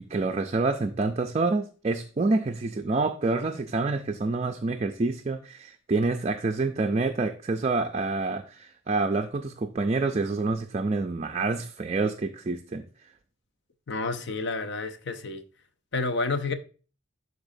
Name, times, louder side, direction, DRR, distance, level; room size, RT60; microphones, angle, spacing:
voice 1, 0.0-12.9, right 3 dB, 30° right, 0.4 m, -27 dB
voice 2, 13.9-15.4 15.9-16.5, left 3 dB, 55° left, 0.7 m, -29 dB
11.5 x 4.0 x 2.7 m
head